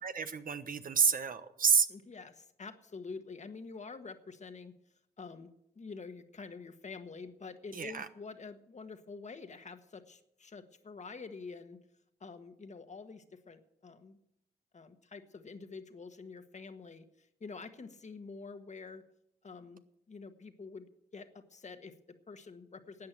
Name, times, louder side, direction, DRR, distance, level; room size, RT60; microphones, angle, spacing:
voice 1, 0.0-1.9 7.7-8.1, right 6 dB, 55° right, 10 dB, 1.1 m, -29 dB
voice 2, 1.9-4.7 5.2-11.8 12.2-14.2 14.7-19.0 19.4-19.8 20.1-23.1, left 4 dB, 45° left, 9 dB, 1.5 m, -47 dB
13.0 x 8.6 x 9.3 m, 0.79 s
cardioid pair, 70°, 17 cm